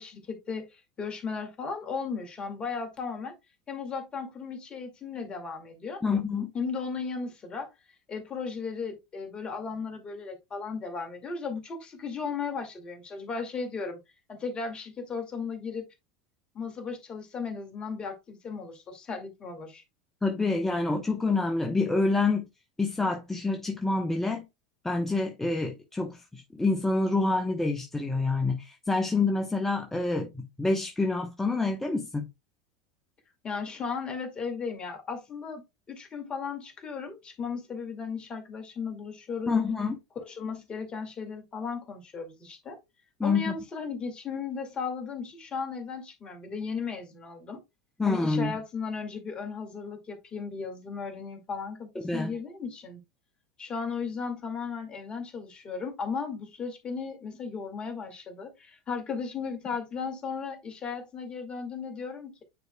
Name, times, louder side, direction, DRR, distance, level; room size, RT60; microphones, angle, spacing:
voice 1, 0.0-3.3 3.7-6.0 6.5-7.7 8.1-14.0 14.3-15.9 16.5-19.8 33.4-39.5 40.2-42.8 43.2-47.6 48.1-53.0 53.6-62.4, left 5 dB, 30° left, 2.0 m, -36 dB
voice 2, 6.0-6.5 20.2-22.4 22.8-24.4 24.8-32.3 39.5-40.0 43.2-43.5 48.0-48.6 52.0-52.3, left 3 dB, 10° left, 1.0 m, -27 dB
9.4 x 4.7 x 2.2 m
hypercardioid pair, 85°, 3 cm